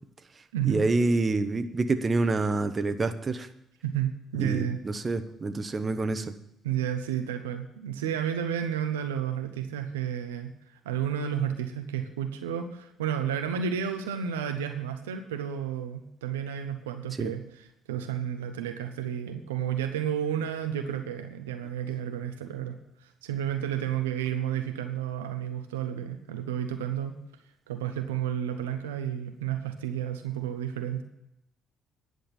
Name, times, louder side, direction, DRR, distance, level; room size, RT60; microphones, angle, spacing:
voice 1, 0.3-3.5 4.4-6.3 17.2-17.3, right 3 dB, 35° right, 9 dB, 1.1 m, -27 dB
voice 2, 3.8-4.8 6.6-17.4 17.9-27.1 27.7-31.0, right 9 dB, 85° right, 6 dB, 0.8 m, -31 dB
10.0 x 6.5 x 9.0 m, 0.81 s
hypercardioid pair, 50°, 0 cm